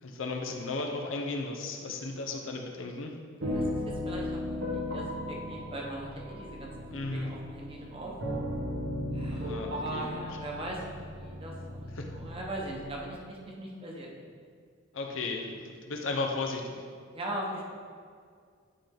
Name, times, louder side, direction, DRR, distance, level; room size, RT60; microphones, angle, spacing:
voice 1, 0.0-3.1 6.9-7.3 9.3-10.1 10.5-10.6 11.9-12.1 14.9-16.7, left 3 dB, 85° left, 2 dB, 0.8 m, -35 dB
voice 2, 3.4-6.7 7.1-8.1 9.1-14.1 17.1-17.6, right 1 dB, 30° right, -2 dB, 1.1 m, -40 dB
sound 1, 3.4-13.0, left 1 dB, 85° right, 1.3 m, -36 dB
9.8 x 3.5 x 3.8 m, 2.1 s
head